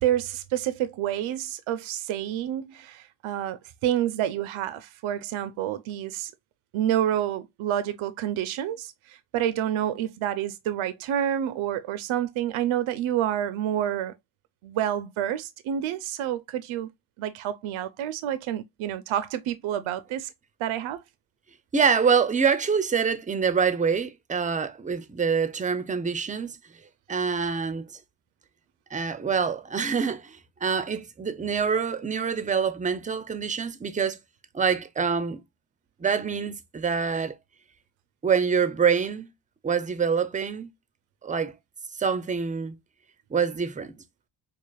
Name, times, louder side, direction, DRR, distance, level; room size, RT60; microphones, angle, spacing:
voice 1, 0.0-6.3 6.7-14.1 14.6-16.9 17.2-20.3 20.6-21.0, right 11 dB, 80° right, 0.5 m, -28 dB
voice 2, 21.7-26.5 27.1-27.9 28.9-34.2 34.5-35.4 36.0-37.3 38.2-39.3 39.6-40.7 41.2-41.5 42.0-42.8 43.3-43.9, right 6 dB, 20° right, 0.4 m, -25 dB
4.9 x 2.5 x 2.2 m
cardioid pair, 95°, 48 cm